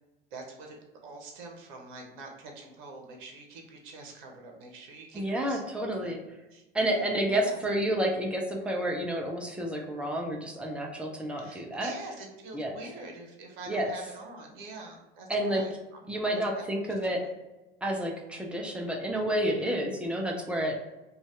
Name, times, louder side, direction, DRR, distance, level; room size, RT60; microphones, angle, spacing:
voice 1, 0.3-5.6 6.0-6.1 6.5-6.6 7.2-7.6 11.4-15.7 16.3-17.3, right 2 dB, 55° right, 2 dB, 0.9 m, -45 dB
voice 2, 5.1-6.2 6.7-11.9 12.5-12.8 13.7-13.9 15.3-15.6 16.1-17.2 17.8-20.8, right 1 dB, 5° right, 0 dB, 0.4 m, -30 dB
2.6 x 2.3 x 3.2 m, 1.0 s
figure-of-eight pair, 85°, 29 cm